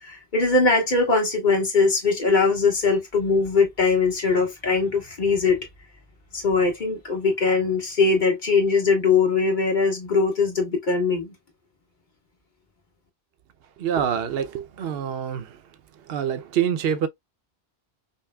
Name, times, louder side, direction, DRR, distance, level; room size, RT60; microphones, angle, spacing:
voice 1, 0.0-5.7 6.3-11.3, left 4 dB, 50° left, 1.5 m, -21 dB
voice 2, 13.8-15.6 16.1-17.1, right 8 dB, 70° right, 0.8 m, -26 dB
5.3 x 2.1 x 2.2 m
omnidirectional pair, 1.1 m